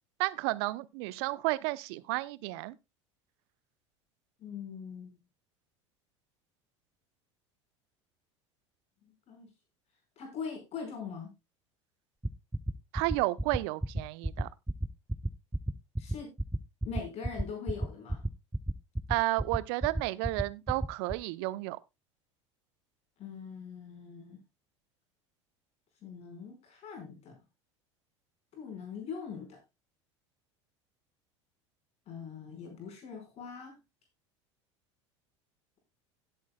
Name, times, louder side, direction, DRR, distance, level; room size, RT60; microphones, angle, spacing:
voice 1, 0.2-2.8 12.9-14.5 19.1-21.8, right 21 dB, 60° right, 0.8 m, -32 dB
voice 2, 4.4-5.2 9.3-9.5 10.2-11.3 16.0-16.3 16.8-18.2 23.2-24.4 26.0-27.4 28.5-29.6 32.1-33.8, left 6 dB, 45° left, 5.2 m, -42 dB
sound 1, 12.2-21.1, right 1 dB, 5° right, 0.8 m, -31 dB
18.0 x 8.2 x 2.3 m
figure-of-eight pair, 75°, 16 cm